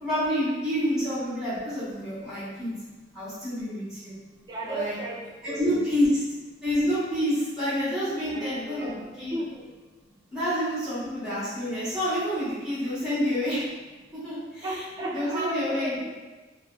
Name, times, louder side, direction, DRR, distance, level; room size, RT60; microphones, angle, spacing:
voice 1, 0.0-2.7 3.1-4.2 4.6-4.9 5.4-6.1 6.6-9.4 10.3-13.6 14.1-14.8 15.1-16.0, equal, 5° right, -12 dB, 1.0 m, -28 dB
voice 2, 4.5-5.7 8.2-9.6 14.6-16.2, right 1 dB, 25° right, -4 dB, 0.4 m, -34 dB
2.5 x 2.1 x 2.4 m, 1.2 s
head